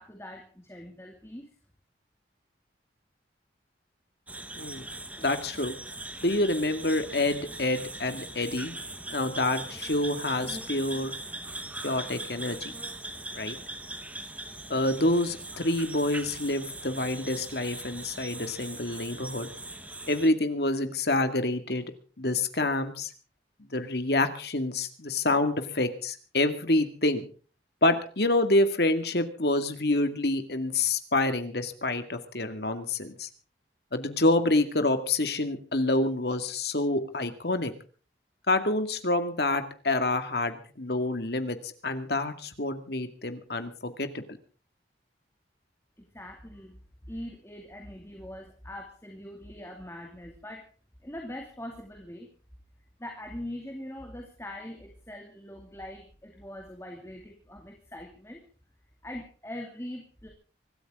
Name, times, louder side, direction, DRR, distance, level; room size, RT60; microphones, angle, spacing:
voice 1, 0.0-1.5 46.0-50.6 51.0-52.3 53.0-58.4 59.0-60.3, left 1 dB, 15° left, 2 dB, 2.5 m, -42 dB
sound 1, 4.3-20.3, right 2 dB, 10° right, 1.2 m, -40 dB
voice 2, 5.2-5.8 6.2-8.7 9.1-11.1 11.8-12.7 13.3-13.6 14.7-19.5 20.1-21.9 22.2-23.1 23.6-27.3 27.8-33.3 33.9-37.7 38.5-44.2, left 2 dB, 60° left, 9 dB, 2.2 m, -27 dB
25.0 x 13.5 x 3.8 m, 0.40 s
head